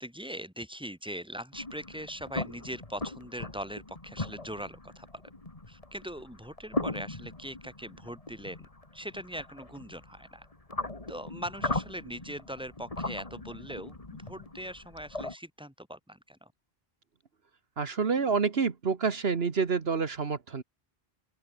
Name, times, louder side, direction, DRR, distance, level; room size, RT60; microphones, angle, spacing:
voice 1, 0.0-5.2 5.7-8.7 8.9-10.5 11.1-16.5, equal, 5° right, 4.5 m, -41 dB
sound 1, 1.5-15.3, left 2 dB, 35° left, 2.4 m, -39 dB
voice 2, 17.8-20.6, right 5 dB, 75° right, 1.7 m, -28 dB
open air
omnidirectional pair, 1.1 m